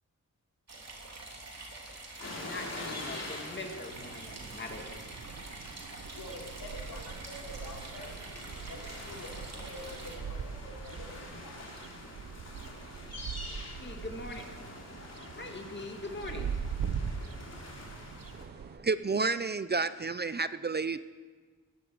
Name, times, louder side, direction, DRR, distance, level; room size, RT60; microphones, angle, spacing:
sound 1, 0.7-10.2, right 2 dB, 50° right, 3.2 m, -46 dB
sound 2, 2.2-18.4, left 2 dB, 50° left, 3.4 m, -46 dB
voice 1, 2.4-5.0 13.8-14.6 15.3-16.5, left 2 dB, 35° left, 2 dB, 2.2 m, -42 dB
sound 3, 3.9-18.8, right 7 dB, 80° right, 0.9 m, -42 dB
voice 2, 6.1-8.2 8.7-11.2 11.4-11.6, left 1 dB, 90° left, -1 dB, 3.5 m, -46 dB
voice 3, 18.3-21.0, right 4 dB, 30° right, 14 dB, 0.5 m, -31 dB
20.5 x 15.0 x 4.7 m, 1.4 s
wide cardioid pair, 100°, 33 cm